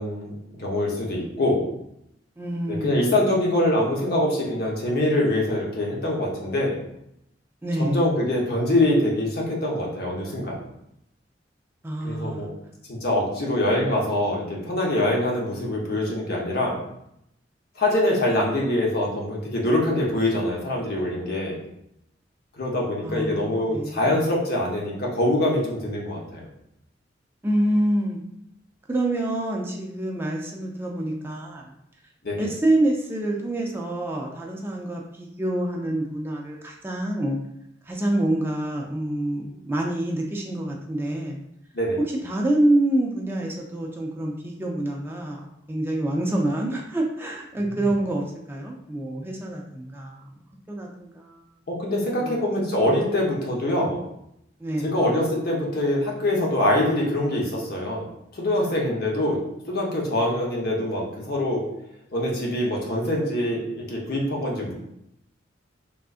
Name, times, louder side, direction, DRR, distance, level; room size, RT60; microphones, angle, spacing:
voice 1, 0.0-1.6 2.7-6.8 7.8-10.6 12.0-12.5 12.9-16.8 17.8-21.6 22.5-26.5 32.2-32.5 41.7-42.0 51.7-54.0 54.8-58.1 58.3-59.4 59.7-61.6 62.1-64.7, left 1 dB, 55° left, -2 dB, 0.8 m, -24 dB
voice 2, 2.4-3.1 7.6-8.0 11.8-12.5 23.0-24.2 27.4-28.2 28.9-31.7 32.4-37.4 37.9-41.4 42.2-50.2 50.7-51.4 52.2-52.3 54.6-54.9, right 1 dB, 10° right, -1 dB, 0.3 m, -26 dB
3.5 x 2.4 x 2.4 m, 0.79 s
head